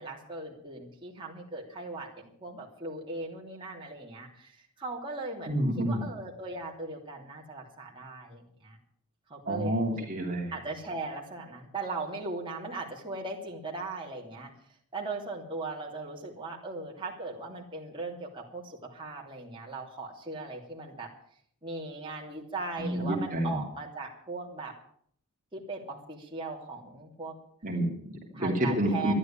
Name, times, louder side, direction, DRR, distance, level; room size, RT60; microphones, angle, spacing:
voice 1, 0.0-8.8 9.3-10.1 10.5-14.5 14.9-21.1 21.6-24.7 25.5-27.3 28.3-29.1, right 3 dB, 25° right, -2 dB, 3.0 m, -39 dB
voice 2, 5.5-6.0 9.5-10.5 22.8-23.6 27.6-29.1, right 1 dB, 40° right, 0 dB, 2.8 m, -29 dB
13.0 x 11.0 x 8.7 m, 0.62 s
head